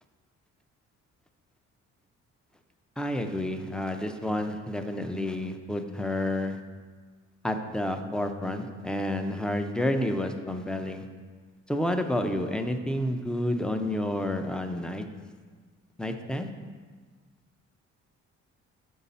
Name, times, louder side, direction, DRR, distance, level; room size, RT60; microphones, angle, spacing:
voice 1, 3.0-6.6 7.4-11.1 11.7-15.1 16.0-16.5, left 1 dB, 5° left, 6 dB, 0.5 m, -30 dB
6.4 x 5.5 x 4.1 m, 1.5 s
cardioid pair, 90°, 30 cm